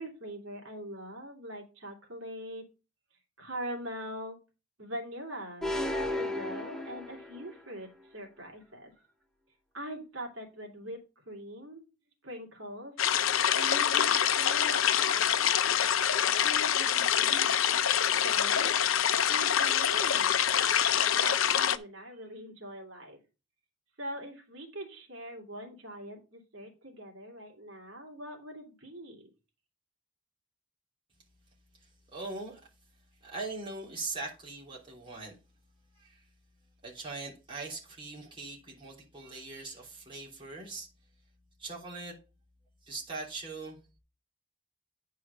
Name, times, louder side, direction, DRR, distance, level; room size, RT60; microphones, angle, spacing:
voice 1, 0.0-2.7 3.4-4.4 4.8-9.1 9.7-11.8 12.2-13.0 13.6-15.3 16.4-17.5 18.0-18.7 19.3-23.2 24.0-29.3, equal, 75° right, 2.6 m, -42 dB
sound 1, 5.6-7.6, left 1 dB, 5° left, 0.8 m, -34 dB
sound 2, 13.0-21.8, left 9 dB, 85° left, 0.6 m, -26 dB
voice 2, 32.1-32.6 33.2-35.4 35.9-36.2 36.8-40.9 41.6-42.2 42.8-43.8, right 3 dB, 25° right, 3.3 m, -41 dB
9.9 x 4.8 x 5.3 m
head